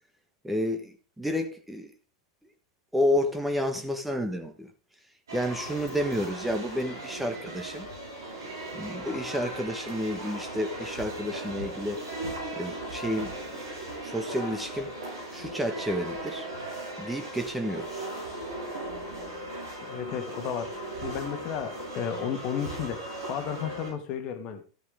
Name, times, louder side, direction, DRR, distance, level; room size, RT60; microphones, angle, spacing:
voice 1, 0.4-1.9 2.9-4.7 5.3-7.9 8.7-12.0 12.5-13.6 14.0-14.9 15.3-16.5 17.0-18.1, equal, 5° right, 4 dB, 1.5 m, -30 dB
sound 1, 5.3-23.9, right 1 dB, 70° right, 7.2 m, -38 dB
voice 2, 19.8-24.6, left 8 dB, 40° left, 7 dB, 1.8 m, -33 dB
13.5 x 8.2 x 3.8 m, 0.36 s
figure-of-eight pair, 90°, 2 cm